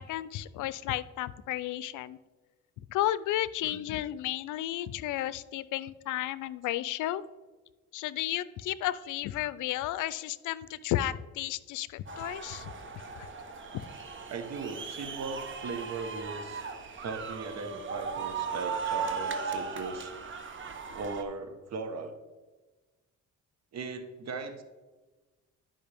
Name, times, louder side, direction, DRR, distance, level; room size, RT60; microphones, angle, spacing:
voice 1, 0.0-2.2 2.9-7.2 7.9-12.7 13.2-13.3, left 14 dB, 85° left, 17 dB, 0.5 m, -33 dB
sound 1, 12.1-21.2, right 5 dB, 40° right, 1.0 m, -37 dB
voice 2, 14.3-16.6 17.0-20.1 20.9-22.1 23.7-24.6, right 4 dB, 60° right, 7 dB, 1.2 m, -38 dB
11.5 x 5.5 x 3.5 m, 1.2 s
cardioid pair, 90°, 30 cm